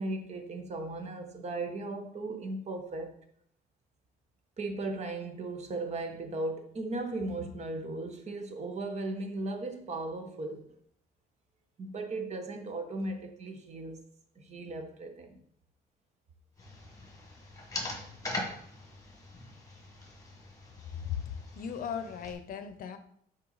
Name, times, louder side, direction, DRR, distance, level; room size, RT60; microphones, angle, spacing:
voice 1, 0.0-3.1 4.6-10.7 11.8-14.0 14.4-15.4, right 2 dB, 40° right, 5 dB, 1.1 m, -37 dB
sound 1, 16.6-22.3, left 2 dB, 20° left, 1.6 m, -42 dB
voice 2, 20.9-23.0, left 8 dB, 60° left, 10 dB, 0.7 m, -37 dB
5.7 x 4.6 x 4.0 m, 0.66 s
cardioid pair, 110°, 17 cm